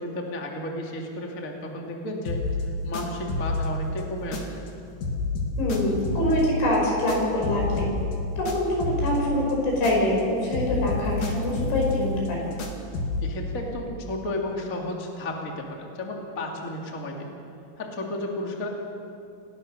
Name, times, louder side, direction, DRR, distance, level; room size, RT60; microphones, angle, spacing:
voice 1, 0.0-2.4 2.8-4.4 13.2-17.3 17.8-18.7, left 1 dB, 25° left, 0 dB, 2.1 m, -33 dB
sound 1, 2.3-4.7 5.0-10.2 10.5-13.3, left 3 dB, 50° left, 3.2 m, -30 dB
voice 2, 5.6-7.9 8.4-12.5, left 1 dB, 65° left, -1 dB, 8.0 m, -25 dB
29.0 x 20.5 x 6.7 m, 2.6 s
omnidirectional pair, 5.7 m